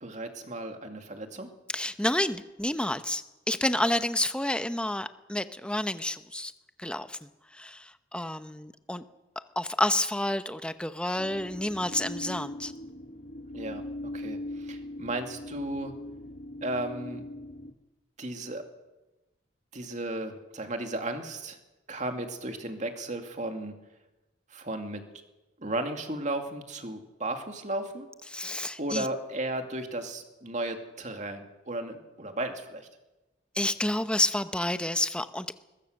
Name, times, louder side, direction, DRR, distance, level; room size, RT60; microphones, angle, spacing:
voice 1, 0.0-1.5 13.5-13.8 14.1-15.9 16.6-17.2 18.2-18.6 19.7-21.6 21.9-23.7 24.5-25.0 25.6-28.1 28.8-32.9, right 1 dB, 40° right, 5 dB, 2.4 m, -34 dB
voice 2, 1.7-6.5 6.8-9.0 9.6-12.7 28.3-29.1 33.5-35.5, left 1 dB, 5° left, 10 dB, 0.8 m, -29 dB
sound 1, 11.2-17.7, left 1 dB, 45° left, 1.6 m, -40 dB
21.5 x 21.0 x 6.6 m, 1.0 s
head